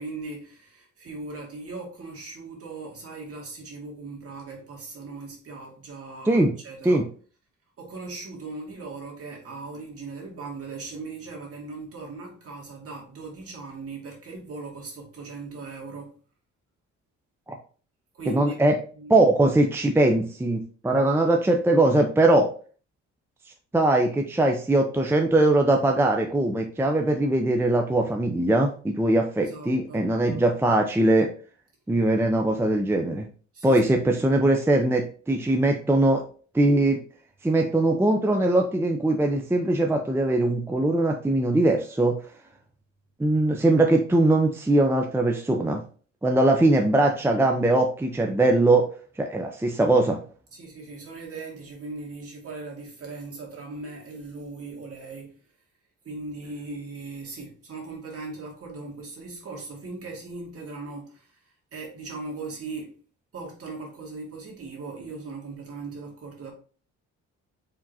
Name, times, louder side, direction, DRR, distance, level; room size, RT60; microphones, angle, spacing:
voice 1, 0.0-7.0 7.8-16.2 18.1-18.6 19.0-19.3 29.4-30.7 33.5-34.2 50.5-55.4 56.0-61.4 61.7-63.0 63.3-66.5, right 3 dB, 50° right, 2.1 m, -39 dB
voice 2, 18.3-18.8 19.1-22.5 23.7-31.3 31.9-33.3 33.6-36.2 36.5-37.0 37.4-42.2 43.2-45.8 46.2-48.9 49.2-50.2, right 2 dB, 10° right, 0.6 m, -21 dB
4.7 x 3.6 x 2.7 m
cardioid pair, 90°, 30 cm